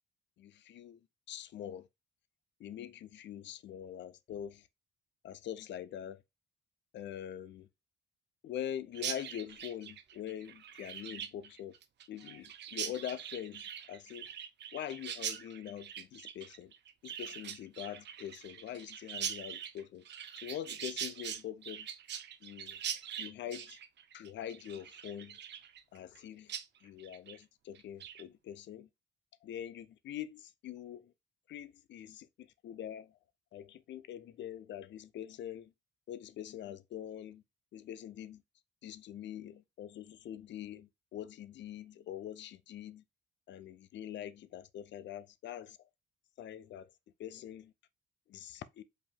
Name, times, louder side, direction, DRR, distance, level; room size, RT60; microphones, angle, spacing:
voice 1, 0.4-1.0 1.3-1.9 2.6-4.7 5.2-6.2 6.9-7.7 8.4-11.8 12.1-14.3 14.7-16.7 17.0-20.0 20.4-21.9 22.4-22.8 23.2-23.8 24.1-25.4 25.9-26.5 26.8-28.9 29.4-31.1 31.5-33.2 33.5-35.7 36.1-37.4 37.7-38.4 38.8-43.0 43.5-45.9 46.4-46.9 47.2-47.7 48.3-48.8, left 10 dB, 65° left, 0.5 m, -44 dB
Chirp tweet, 8.9-26.2 26.5-26.7 27.0-27.4 27.8-28.2, right 9 dB, 60° right, 0.6 m, -43 dB
5.1 x 2.8 x 3.5 m
cardioid pair, 90°, 20 cm